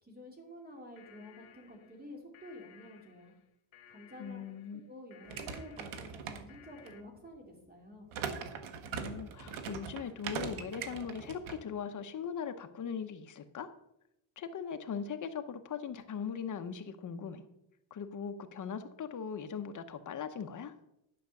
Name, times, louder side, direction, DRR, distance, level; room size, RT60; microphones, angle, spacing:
voice 1, 0.0-3.3 3.9-4.4 4.9-8.1, left 1 dB, 20° right, 1 dB, 2.6 m, -50 dB
sound 1, 0.7-7.0, left 9 dB, 80° left, 1.3 m, -60 dB
voice 2, 4.2-4.8 8.9-13.7 14.4-17.5 17.9-20.7, left 7 dB, 40° left, 7 dB, 1.0 m, -40 dB
sound 2, 5.2-6.9 8.1-11.6, right 6 dB, 90° right, 1.4 m, -41 dB
11.0 x 5.8 x 6.5 m, 0.81 s
cardioid pair, 150°, 47 cm